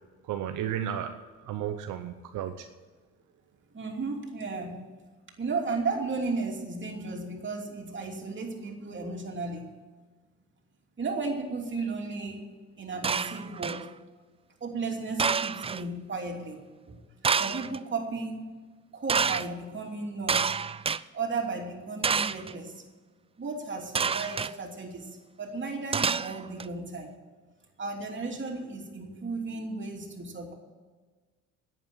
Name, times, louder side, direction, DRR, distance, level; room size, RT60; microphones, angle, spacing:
voice 1, 0.3-1.2 1.4-2.7, right 10 dB, 85° right, 7 dB, 0.8 m, -33 dB
voice 2, 3.7-4.8 5.4-9.6 11.0-12.4 12.8-13.9 14.6-17.0 17.3-18.5 18.9-20.6 21.1-22.8 23.4-25.1 25.4-27.1 27.8-30.5, right 3 dB, 40° right, 1 dB, 3.0 m, -34 dB
sound 1, 13.0-13.9 15.2-15.8 17.2-17.8 19.1-19.5 20.3-21.0 22.0-22.5 24.0-24.5 25.9-26.7, right 6 dB, 20° right, 0.3 m, -28 dB
10.5 x 8.6 x 9.2 m, 1.4 s
cardioid pair, 90°, 30 cm